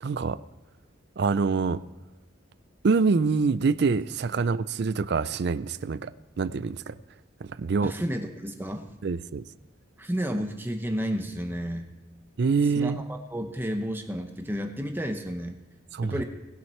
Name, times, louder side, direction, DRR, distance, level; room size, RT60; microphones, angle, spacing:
voice 1, 0.0-0.4 1.2-1.8 2.8-6.1 6.4-6.9 7.4-7.9 9.0-9.4 12.4-13.0 15.9-16.2, right 4 dB, 55° right, 0.4 m, -25 dB
voice 2, 7.8-8.8 10.0-11.9 12.7-15.6 16.0-16.2, equal, 10° right, 0.8 m, -31 dB
19.5 x 6.5 x 4.4 m
head